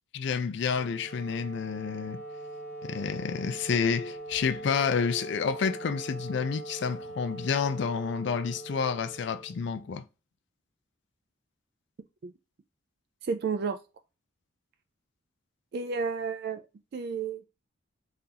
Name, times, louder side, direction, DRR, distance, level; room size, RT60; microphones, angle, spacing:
voice 1, 0.1-2.2 2.8-10.0, left 6 dB, 60° left, 0.4 m, -29 dB
Wind instrument woodwind instrument, 0.6-9.9, right 2 dB, 35° left, 1.0 m, -42 dB
voice 2, 13.2-13.8 15.7-16.6 16.9-17.5, right 5 dB, 55° right, 0.3 m, -31 dB
3.8 x 2.4 x 2.8 m
head